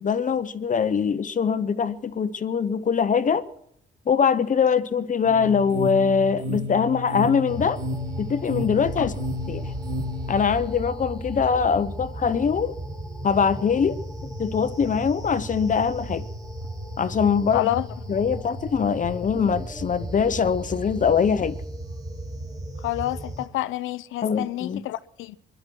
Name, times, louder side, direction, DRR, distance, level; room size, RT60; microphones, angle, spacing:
voice 1, 0.0-3.4 4.1-7.8 8.2-9.1 9.5-9.7 10.3-12.7 13.2-14.0 14.4-16.3 17.0-17.7 18.1-21.6 24.2-24.8, left 6 dB, 40° left, 0.8 m, -23 dB
sound 1, 5.2-10.4, left 1 dB, 85° right, 2.6 m, -32 dB
sound 2, 7.5-23.5, right 1 dB, 20° right, 2.9 m, -35 dB
voice 2, 17.5-17.9 22.8-25.4, left 14 dB, 85° left, 0.7 m, -28 dB
20.5 x 11.5 x 6.2 m
cardioid pair, 90°, 20 cm